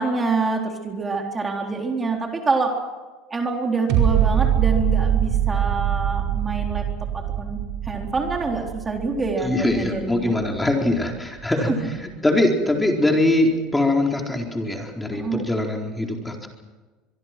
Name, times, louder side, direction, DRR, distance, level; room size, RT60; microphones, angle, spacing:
voice 1, 0.0-2.7 3.3-6.9 7.1-10.3 11.7-11.8 15.1-15.4, right 3 dB, 20° right, 2 dB, 3.8 m, -26 dB
sound 1, 3.9-10.9 11.4-11.5, right 9 dB, 70° right, 4.8 m, -23 dB
voice 2, 9.4-16.5, left 1 dB, 10° left, 1 dB, 4.2 m, -22 dB
24.0 x 23.0 x 6.1 m, 1.3 s
supercardioid pair, 95°, 0 cm